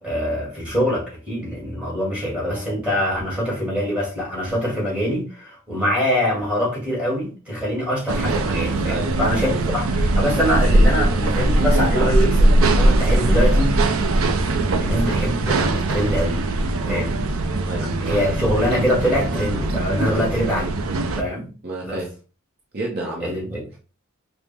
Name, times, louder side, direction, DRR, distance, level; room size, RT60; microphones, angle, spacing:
voice 1, 0.0-13.8 14.8-16.4 16.9-17.3 18.0-20.7 21.2-21.5 21.8-22.0 23.2-23.6, equal, 5° right, 1.9 m, -24 dB
sound 1, 8.1-21.2, right 2 dB, 75° right, 0.5 m, -20 dB
voice 2, 8.9-9.2 9.4-9.7 16.8-17.1 17.7-17.9 20.0-20.3 21.6-22.2 22.7-23.3, right 2 dB, 45° right, 0.7 m, -30 dB
5.0 x 2.0 x 3.3 m
head